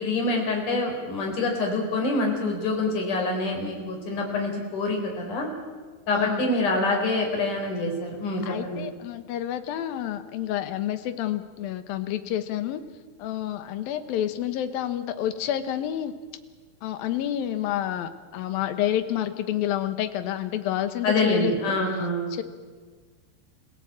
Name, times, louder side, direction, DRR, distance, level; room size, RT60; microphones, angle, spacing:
voice 1, 0.0-5.5 6.1-8.9 21.0-22.3, left 2 dB, 50° left, 2 dB, 5.8 m, -26 dB
voice 2, 6.1-6.7 8.4-12.8 13.2-16.1 16.8-21.8 22.3-22.4, left 11 dB, 65° left, 10 dB, 2.8 m, -29 dB
27.5 x 17.0 x 8.8 m, 1.5 s
omnidirectional pair, 4.8 m